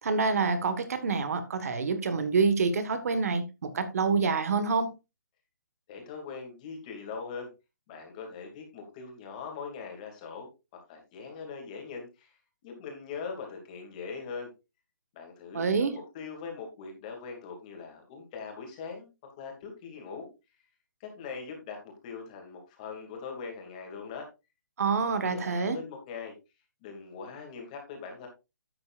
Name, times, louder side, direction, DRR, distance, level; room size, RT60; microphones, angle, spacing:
voice 1, 0.0-4.9 15.5-15.9 24.8-25.8, right 4 dB, 50° right, 1.6 m, -27 dB
voice 2, 5.9-7.5 7.9-12.3 12.6-14.5 15.1-19.1 19.4-20.3 21.0-24.3 25.0-26.3 26.8-28.3, left 5 dB, 25° left, 2.5 m, -41 dB
12.0 x 8.6 x 2.5 m
hypercardioid pair, 170°, 10 cm